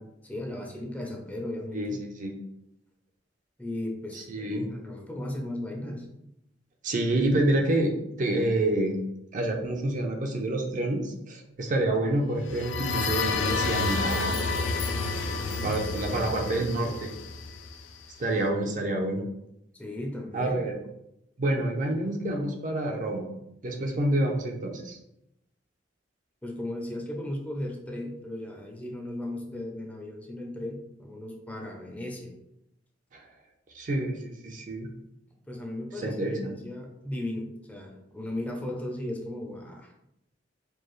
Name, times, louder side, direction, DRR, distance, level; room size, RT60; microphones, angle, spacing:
voice 1, 0.2-2.0 3.6-6.1 15.3-15.8 19.7-20.7 26.4-32.3 35.5-39.9, left 1 dB, 10° left, 0 dB, 0.5 m, -36 dB
voice 2, 1.7-2.3 4.1-4.7 6.8-9.0 9.3-14.3 15.6-17.1 18.2-19.2 20.3-20.8 21.4-23.3 23.6-25.0 33.1-33.3 33.7-34.9 36.0-36.5, right 1 dB, 45° right, 2 dB, 0.5 m, -28 dB
sound 1, 12.4-18.1, left 4 dB, 70° left, 0.4 m, -30 dB
4.5 x 2.3 x 3.1 m, 0.83 s
head